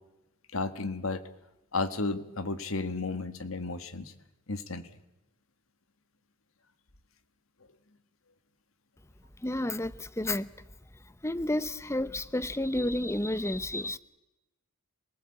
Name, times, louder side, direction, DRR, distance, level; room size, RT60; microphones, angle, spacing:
voice 1, 0.5-1.2 1.7-4.1 4.5-4.8, left 3 dB, 80° left, 1.8 m, -33 dB
voice 2, 9.4-10.5 11.2-14.0, left 1 dB, 15° left, 0.8 m, -31 dB
27.5 x 19.0 x 8.7 m
head